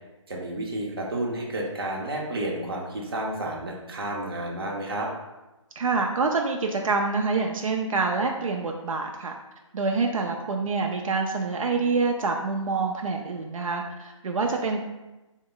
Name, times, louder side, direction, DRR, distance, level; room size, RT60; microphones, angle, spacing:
voice 1, 0.3-5.1, right 1 dB, 45° right, -1 dB, 0.8 m, -31 dB
voice 2, 5.8-9.3 9.7-14.8, right 4 dB, 85° right, 2 dB, 0.5 m, -26 dB
3.9 x 2.1 x 3.8 m, 1.0 s
hypercardioid pair, 175°, 17 cm